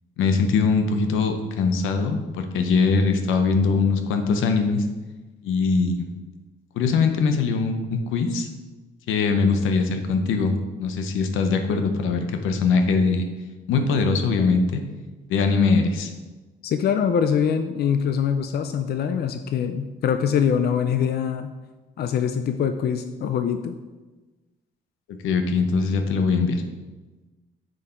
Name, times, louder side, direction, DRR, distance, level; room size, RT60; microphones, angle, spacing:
voice 1, 0.2-4.8 5.4-6.1 6.8-8.5 9.1-10.5 10.8-13.2 13.7-14.8 15.3-16.1 25.2-26.6, left 4 dB, 90° left, 6 dB, 0.8 m, -22 dB
voice 2, 16.6-21.5 22.0-23.7, left 7 dB, 55° left, 8 dB, 0.5 m, -23 dB
6.4 x 5.0 x 4.3 m, 1.2 s
cardioid pair, 90°, 20 cm